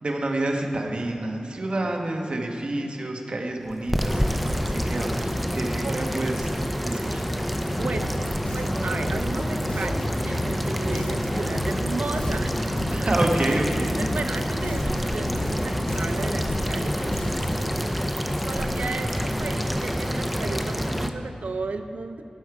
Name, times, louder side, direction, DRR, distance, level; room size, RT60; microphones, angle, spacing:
voice 1, 0.0-6.5 6.8-7.2 12.9-14.0, right 1 dB, 50° right, 1 dB, 1.3 m, -28 dB
sound 1, 3.7-21.1, equal, ahead, 0.6 m, -27 dB
sound 2, 7.0-20.6, left 1 dB, 50° left, 1.1 m, -41 dB
voice 2, 7.6-8.2 8.5-13.0 14.0-17.4 18.4-22.2, right 4 dB, 80° right, 7 dB, 0.6 m, -34 dB
Bass guitar, 7.8-17.7, left 1 dB, 75° left, 0.8 m, -34 dB
16.5 x 6.3 x 4.8 m, 2.9 s
wide cardioid pair, 90°, 2 cm